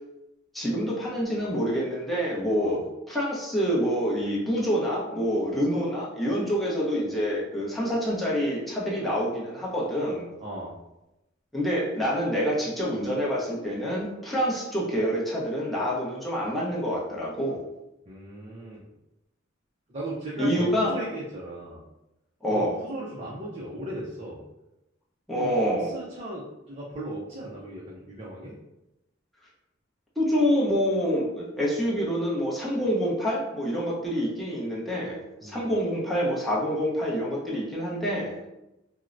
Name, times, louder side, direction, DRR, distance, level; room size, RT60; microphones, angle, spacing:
voice 1, 0.5-2.8 3.1-10.2 11.5-17.6 20.4-20.9 22.4-22.8 25.3-25.9 30.2-38.3, equal, ahead, -6 dB, 0.7 m, -27 dB
voice 2, 10.4-10.7 18.1-18.8 19.9-21.8 22.5-24.4 25.4-28.6 35.4-35.7, right 1 dB, 30° right, -5 dB, 0.5 m, -37 dB
4.4 x 2.0 x 2.5 m, 0.94 s
head